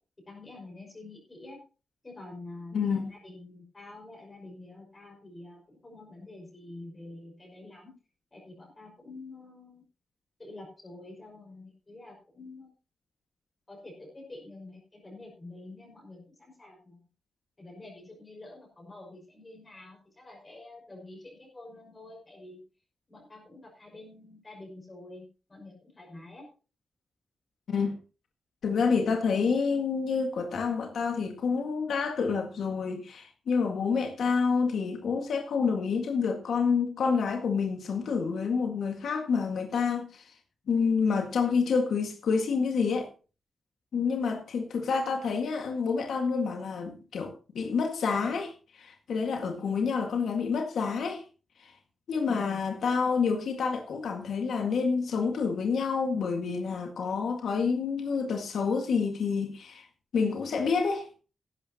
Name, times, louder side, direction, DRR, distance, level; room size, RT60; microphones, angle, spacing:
voice 1, 0.2-1.6 2.0-7.9 8.3-9.8 10.4-12.7 13.7-17.0 17.6-22.6 23.1-26.5 49.4-49.9 52.3-52.7, left 2 dB, 25° left, 5.6 m, -47 dB
voice 2, 2.7-3.1 27.7-28.0 28.6-40.3 40.7-43.1 43.9-51.2 51.6-51.7 52.1-59.9 60.1-61.1, left 5 dB, 85° left, 1.9 m, -28 dB
15.5 x 12.0 x 2.9 m
wide cardioid pair, 160°, 0 cm